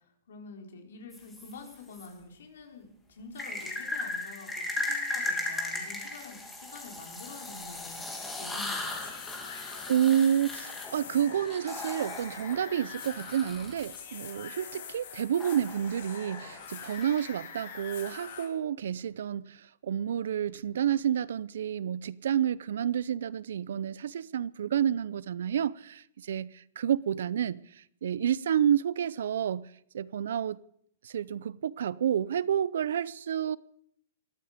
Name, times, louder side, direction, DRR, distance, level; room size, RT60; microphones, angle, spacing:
voice 1, 0.0-9.1, left 4 dB, 80° left, 4.3 m, -47 dB
sound 1, 1.1-2.1 3.4-14.0 15.4-17.2, left 2 dB, 5° left, 2.6 m, -37 dB
sound 2, 8.6-18.5, left 7 dB, 60° left, 3.9 m, -44 dB
voice 2, 9.9-30.6 31.0-33.6, right 9 dB, 75° right, 0.6 m, -29 dB
20.0 x 14.0 x 5.2 m
hypercardioid pair, 165°, 0 cm